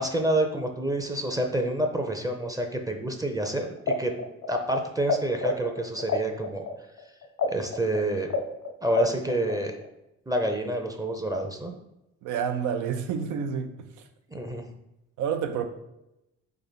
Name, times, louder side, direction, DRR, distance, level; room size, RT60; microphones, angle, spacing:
voice 1, 0.0-4.1 4.5-6.7 7.5-8.3 8.8-9.8 10.3-11.7 14.3-14.6, right 1 dB, 10° right, 3 dB, 0.5 m, -28 dB
sound 1, 3.8-5.1 5.4-9.9, left 5 dB, 70° left, 0.7 m, -29 dB
voice 2, 12.2-13.9 15.2-15.7, right 7 dB, 85° right, 7 dB, 0.6 m, -29 dB
3.9 x 3.4 x 4.0 m, 0.89 s
cardioid pair, 90°, 30 cm